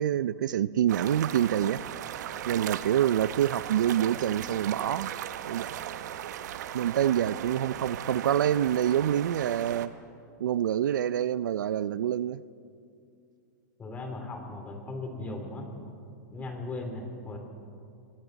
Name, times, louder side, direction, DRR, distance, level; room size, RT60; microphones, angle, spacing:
voice 1, 0.0-1.8 2.5-5.1 5.4-5.8 6.7-9.9 10.4-12.4, right 10 dB, 85° right, 17 dB, 0.6 m, -26 dB
sound 1, 0.9-9.9, right 11 dB, 65° right, 1.1 m, -37 dB
voice 2, 13.8-15.7 16.3-17.4, left 2 dB, 15° left, 4 dB, 3.0 m, -37 dB
29.5 x 22.0 x 4.0 m, 2.4 s
supercardioid pair, 150°, 10 cm